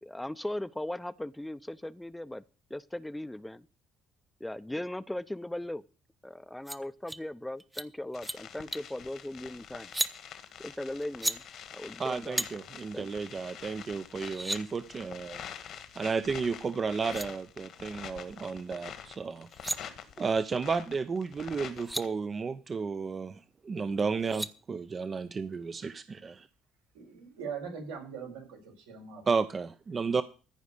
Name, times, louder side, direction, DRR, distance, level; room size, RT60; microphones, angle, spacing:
voice 1, 0.0-2.4 2.7-3.7 4.4-5.8 6.2-9.9 10.6-11.4 11.7-12.5 12.9-13.1, left 1 dB, 10° left, 14 dB, 0.7 m, -38 dB
sound 1, 6.7-6.8 7.1-7.2 7.6-7.9 8.1-8.4 8.7-8.9 9.8-10.1 11.0-11.4 12.4-12.5 13.8-13.9 14.1-14.6 16.7-16.8 17.0-17.3 19.3-19.8 21.4-21.5 21.7-22.0 24.0-24.5, right 1 dB, 10° right, 0.9 m, -34 dB
sound 2, 8.1-22.1, left 8 dB, 65° left, 1.7 m, -46 dB
voice 2, 12.0-15.4 16.0-19.5 20.2-26.5 29.3-30.2, right 5 dB, 40° right, 12 dB, 0.7 m, -32 dB
voice 3, 26.9-29.2, right 6 dB, 85° right, 1 dB, 4.8 m, -41 dB
14.5 x 5.1 x 8.4 m, 0.37 s
hypercardioid pair, 60°, 0 cm